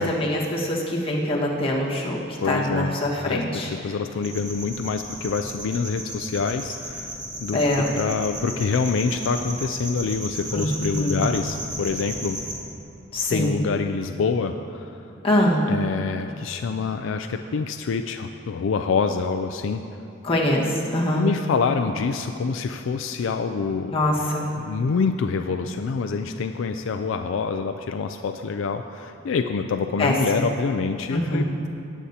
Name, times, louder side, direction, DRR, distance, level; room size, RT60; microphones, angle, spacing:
voice 1, 0.0-3.7 7.5-7.9 10.5-10.7 10.9-11.2 13.1-13.5 15.2-15.6 20.2-21.3 23.9-24.5 30.0-30.4 31.1-31.4, left 1 dB, 25° left, -5 dB, 1.5 m, -23 dB
voice 2, 2.4-3.0 3.2-7.6 8.0-12.4 13.3-15.1 15.7-19.8 21.1-24.0 24.6-31.7, left 5 dB, 70° left, 7 dB, 0.4 m, -26 dB
sound 1, 4.2-12.6, equal, 20° right, 1.6 m, -35 dB
19.0 x 8.2 x 2.8 m, 2.7 s
head